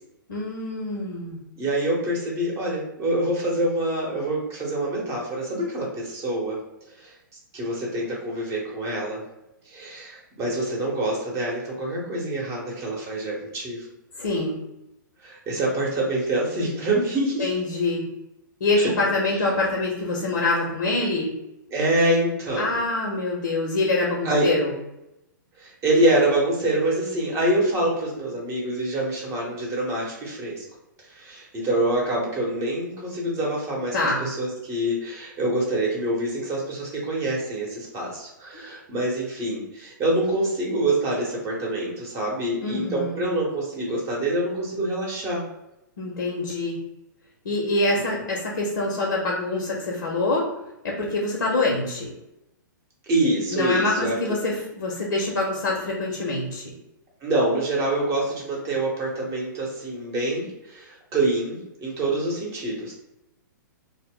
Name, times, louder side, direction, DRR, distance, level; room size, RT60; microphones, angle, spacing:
voice 1, 0.3-1.4 14.2-14.6 17.4-18.0 18.6-21.3 22.6-24.7 33.9-34.3 42.6-43.2 46.0-46.8 47.4-50.5 50.8-52.1 53.5-56.7, left 2 dB, 75° left, -2 dB, 0.7 m, -25 dB
voice 2, 1.6-6.6 7.0-7.1 7.5-9.2 9.7-13.9 15.2-17.5 18.8-18.9 21.7-22.8 24.2-24.5 25.6-30.6 31.1-45.4 53.1-54.1 57.2-62.9, right 1 dB, 25° right, -3 dB, 0.8 m, -26 dB
2.1 x 2.0 x 3.5 m, 0.90 s
hypercardioid pair, 120°, 11 cm